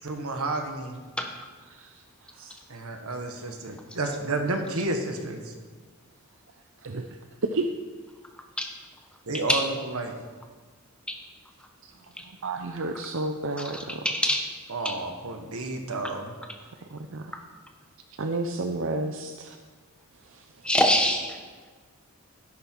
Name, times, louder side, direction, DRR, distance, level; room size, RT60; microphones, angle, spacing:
voice 1, 0.0-0.9 2.7-5.4 9.3-10.1 14.7-16.3, right 2 dB, 85° right, 4 dB, 1.5 m, -31 dB
voice 2, 1.7-2.0 2.3-2.5 6.8-7.1 7.5-7.7 11.8-11.9 12.2-14.1 16.8-17.3 18.2-19.6 20.3-20.7, right 2 dB, 60° right, 6 dB, 0.6 m, -32 dB
voice 3, 13.6-14.4 14.8-15.0 17.3-17.4 20.6-21.4, left 1 dB, 5° left, 3 dB, 1.2 m, -25 dB
12.5 x 11.0 x 4.6 m, 1.4 s
head